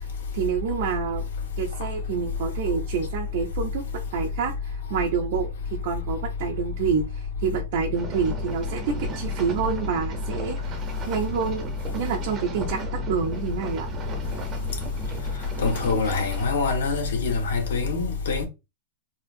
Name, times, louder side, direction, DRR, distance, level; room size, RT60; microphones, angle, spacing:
voice 1, 0.3-1.2 1.6-5.5 5.8-10.8 11.1-11.7 11.9-13.9, right 6 dB, 50° right, 0.7 m, -28 dB
sound 1, 7.9-16.5, right 2 dB, 20° right, 0.8 m, -36 dB
voice 2, 15.6-18.4, left 4 dB, 85° left, 1.6 m, -24 dB
4.2 x 2.9 x 2.6 m
supercardioid pair, 160°, 0 cm